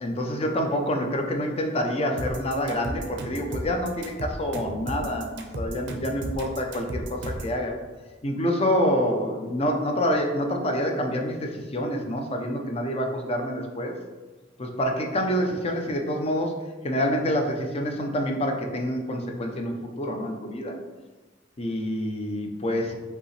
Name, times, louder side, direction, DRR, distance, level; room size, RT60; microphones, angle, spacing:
voice 1, 0.0-7.8 8.2-14.0 14.6-16.5 16.8-20.7 21.6-22.9, equal, 30° left, 3 dB, 0.5 m, -27 dB
sound 1, 2.2-7.6, right 1 dB, 65° right, 0.6 m, -34 dB
5.2 x 2.8 x 3.1 m, 1.2 s
head